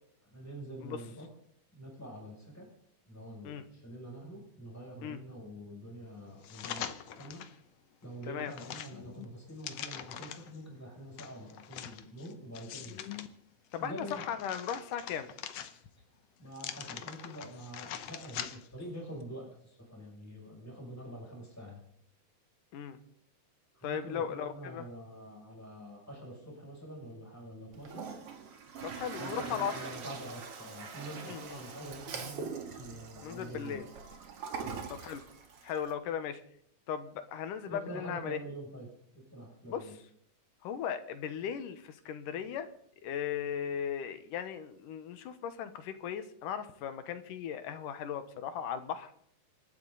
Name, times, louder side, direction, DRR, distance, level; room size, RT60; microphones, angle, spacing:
voice 1, 0.3-1.3 1.7-2.7 3.0-6.9 7.2-7.4 8.0-13.2 13.8-14.2 16.4-21.8 23.7-28.1 29.2-33.9 34.6-34.9 37.7-38.9 39.3-39.9, equal, 5° left, -2 dB, 7.0 m, -46 dB
sound 1, 6.4-7.6 8.0-10.6 11.2-13.3 13.7-16.0 16.5-18.8 19.2-19.3, left 10 dB, 65° left, 1.8 m, -43 dB
voice 2, 13.7-15.3 22.7-23.0 23.8-24.9 28.8-29.7 31.2-31.6 33.2-33.8 34.9-35.2 35.6-36.4 36.9-38.4 39.7-39.9 40.6-42.7 43.0-49.1, left 8 dB, 85° left, 10 dB, 2.8 m, -37 dB
Toilet flush, 27.7-35.9, right 5 dB, 50° right, 2.5 m, -43 dB
28.5 x 12.0 x 4.0 m, 0.66 s
omnidirectional pair, 3.6 m